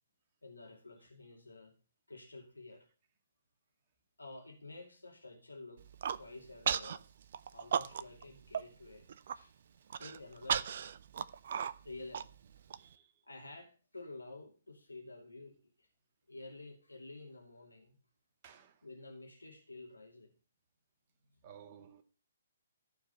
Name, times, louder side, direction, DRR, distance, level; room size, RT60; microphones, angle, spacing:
voice 1, 0.4-1.7 2.1-2.9 4.2-5.8 6.1-7.1 7.5-9.5 10.0-10.8 11.8-12.3 13.2-15.9 16.3-17.9 18.8-20.3, left 2 dB, 85° left, 2.6 m, -51 dB
Human voice, 5.8-6.2 6.7-7.0 7.3-8.2 8.5-8.6 9.0-9.4 9.9-12.8, right 8 dB, 50° right, 0.6 m, -35 dB
voice 2, 12.7-13.2 18.4-18.9 21.4-22.0, right 8 dB, 35° right, 1.7 m, -56 dB
14.5 x 4.8 x 7.0 m
figure-of-eight pair, 130°, 0 cm